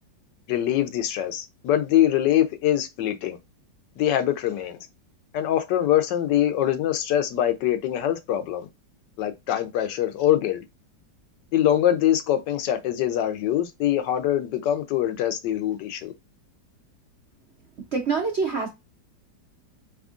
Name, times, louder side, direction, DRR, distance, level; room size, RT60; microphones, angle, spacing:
voice 1, 0.5-3.4 4.0-4.8 5.3-8.7 9.2-10.6 11.5-16.1, left 11 dB, 75° left, 1.2 m, -23 dB
voice 2, 17.9-18.7, right 4 dB, 55° right, 0.8 m, -25 dB
4.1 x 3.6 x 2.4 m
omnidirectional pair, 2.0 m